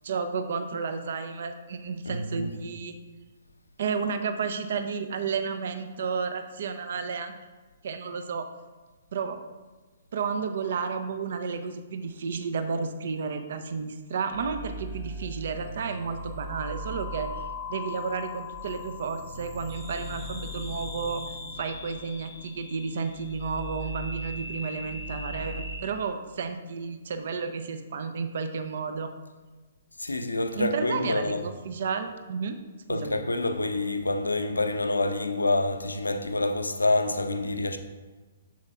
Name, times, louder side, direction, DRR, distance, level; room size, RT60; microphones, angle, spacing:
voice 1, 0.0-3.0 3.8-7.4 7.8-8.5 9.1-9.4 10.1-21.2 21.6-29.1 30.6-32.6 32.9-33.2, right 5 dB, 55° right, 0.6 m, -32 dB
voice 2, 2.0-2.6 30.0-31.5 32.9-37.8, left 2 dB, 75° left, 0.6 m, -27 dB
sound 1, 14.1-25.8, left 1 dB, 35° right, 1.1 m, -38 dB
7.3 x 7.1 x 2.4 m
figure-of-eight pair, 120°, 0 cm